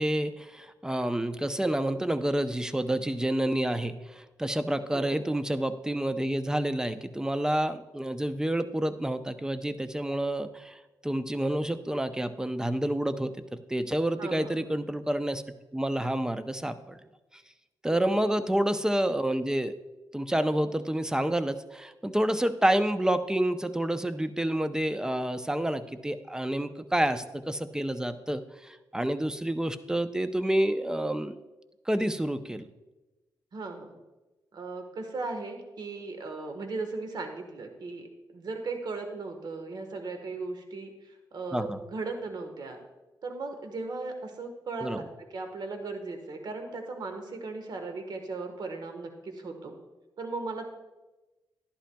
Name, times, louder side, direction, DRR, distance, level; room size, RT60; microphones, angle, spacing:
voice 1, 0.0-15.4 15.7-17.0 17.8-19.7 20.1-31.4 31.9-32.7 41.5-41.8 44.8-45.0, right 1 dB, 10° right, 10 dB, 0.6 m, -29 dB
voice 2, 14.2-14.6 18.0-18.3 33.5-34.0 34.5-42.8 43.2-49.7 50.2-50.6, right 3 dB, 60° right, 5 dB, 1.3 m, -37 dB
11.5 x 11.0 x 2.3 m, 1.1 s
cardioid pair, 70°, 8 cm